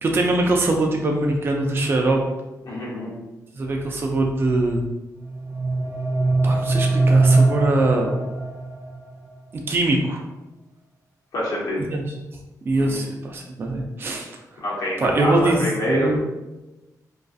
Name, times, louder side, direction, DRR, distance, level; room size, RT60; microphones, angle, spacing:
voice 1, 0.0-2.2 3.5-4.8 6.4-8.1 9.5-10.2 11.8-12.0 12.7-14.3 15.0-16.2, right 2 dB, 35° right, 1 dB, 0.3 m, -22 dB
voice 2, 2.6-3.1 11.3-11.8 12.8-13.0 14.6-16.1, left 1 dB, 75° left, -6 dB, 0.9 m, -26 dB
sound 1, 5.1-9.1, right 3 dB, 75° right, 0.6 m, -21 dB
2.3 x 2.3 x 2.5 m, 1.0 s
wide cardioid pair, 110°, 7 cm